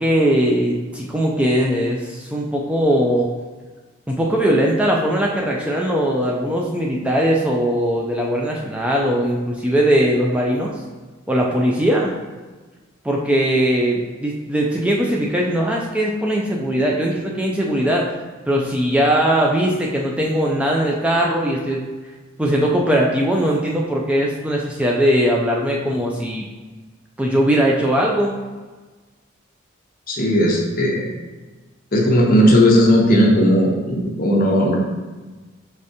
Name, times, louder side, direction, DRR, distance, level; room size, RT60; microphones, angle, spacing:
voice 1, 0.0-3.3 4.1-10.7 11.3-12.1 13.0-18.0 18.5-21.9 22.4-26.5 27.2-28.3, equal, 5° right, -2 dB, 0.3 m, -20 dB
voice 2, 30.1-31.1 31.9-34.8, equal, 45° left, -1 dB, 0.8 m, -16 dB
4.9 x 3.2 x 2.7 m, 1.3 s
head